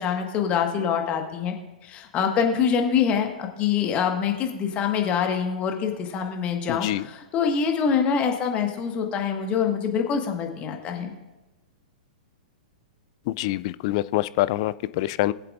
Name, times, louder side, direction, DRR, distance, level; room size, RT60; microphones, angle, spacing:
voice 1, 0.0-1.5 1.8-11.1, left 7 dB, 30° left, 3 dB, 1.5 m, -25 dB
voice 2, 6.7-7.0 13.4-15.3, left 16 dB, 45° left, 16 dB, 0.3 m, -25 dB
20.5 x 7.6 x 2.5 m, 1.1 s
figure-of-eight pair, 105°, 4 cm